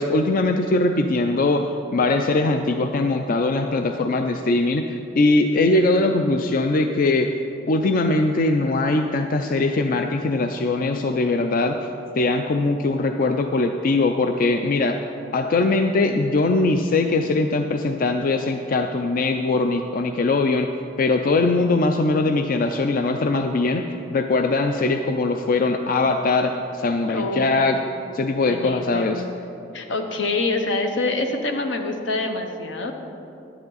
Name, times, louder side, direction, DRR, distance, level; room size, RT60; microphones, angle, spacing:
voice 1, 0.0-7.3 7.7-11.7 12.2-15.0 15.3-20.7 21.0-23.9 24.1-27.8 28.1-29.2, left 2 dB, 50° left, 6 dB, 0.4 m, -21 dB
voice 2, 27.1-27.7 28.4-29.3 29.7-32.9, left 2 dB, 80° left, 4 dB, 1.0 m, -26 dB
10.5 x 9.7 x 4.0 m, 2.8 s
head